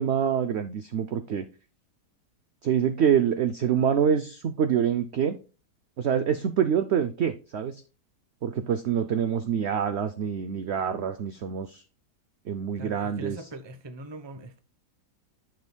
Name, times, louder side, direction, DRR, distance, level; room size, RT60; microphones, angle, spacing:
voice 1, 0.0-1.4 2.6-5.4 6.0-7.8 8.4-11.8 12.5-13.4, right 8 dB, 70° right, 0.6 m, -26 dB
voice 2, 12.8-14.6, right 1 dB, 25° right, 0.6 m, -41 dB
10.5 x 5.9 x 2.2 m
omnidirectional pair, 1.8 m